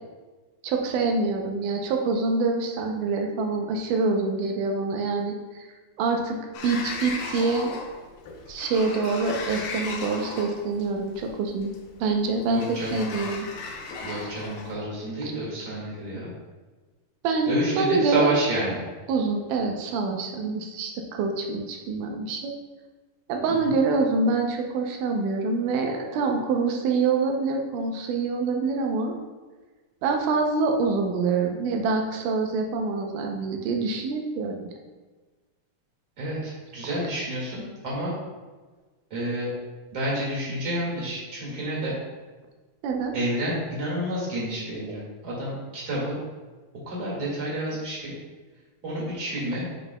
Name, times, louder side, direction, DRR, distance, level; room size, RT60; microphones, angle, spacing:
voice 1, 0.6-5.4 6.0-6.4 6.6-7.7 8.5-11.7 12.0-12.6 12.9-13.5 15.2-15.3 17.2-18.3 19.1-22.5 23.3-29.1 30.0-34.7 42.8-43.1 44.9-45.0, right 4 dB, 80° right, 2 dB, 1.8 m, -25 dB
Sliding door, 6.5-14.7, left 4 dB, 80° left, 2.7 m, -37 dB
voice 2, 12.5-13.1 14.0-16.3 17.5-18.8 23.5-23.7 36.2-38.1 39.1-39.5 39.9-41.9 43.1-46.2 46.8-48.1 48.8-49.7, right 1 dB, 35° right, -5 dB, 1.7 m, -29 dB
9.7 x 5.0 x 2.2 m, 1.3 s
omnidirectional pair, 4.4 m